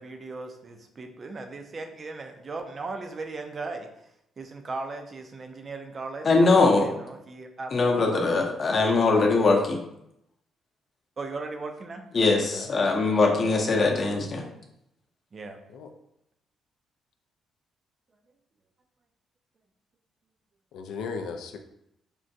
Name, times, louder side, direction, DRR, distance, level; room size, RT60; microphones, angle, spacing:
voice 1, 0.0-3.9 4.4-7.7 11.2-12.1 15.3-15.6, right 3 dB, 40° right, 5 dB, 0.4 m, -37 dB
voice 2, 6.2-6.9 7.7-9.8 12.1-14.4, left 3 dB, 45° left, 1 dB, 0.6 m, -21 dB
voice 3, 20.7-21.6, left 5 dB, 80° left, 5 dB, 0.3 m, -36 dB
3.6 x 2.2 x 2.6 m, 0.80 s
cardioid pair, 90°, 0 cm